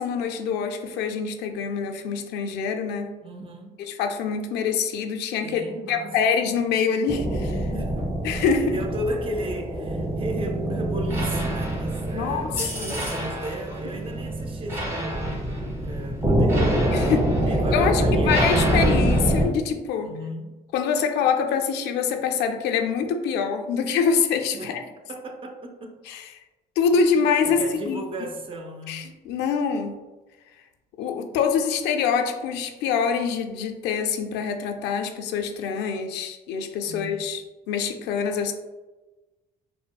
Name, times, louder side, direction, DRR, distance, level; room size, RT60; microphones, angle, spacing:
voice 1, 0.0-3.1 3.8-5.6 5.9-7.7 8.2-8.8 12.1-12.5 12.8-12.9 16.9-17.3 17.7-20.1 20.7-24.8 26.1-26.2 26.8-28.0 28.9-30.0 31.0-37.4 37.7-38.5, left 6 dB, 85° left, 5 dB, 0.4 m, -25 dB
voice 2, 3.2-3.9 5.4-6.2 6.8-6.9 7.7-17.1 17.5-18.6 20.0-20.6 24.5-26.0 26.9-27.0 27.4-29.1 36.8-37.3, right 1 dB, 30° right, 3 dB, 0.5 m, -35 dB
sound 1, 7.1-19.5, right 1 dB, 15° right, 1.1 m, -25 dB
4.1 x 2.0 x 2.2 m, 1.2 s
cardioid pair, 110°, 17 cm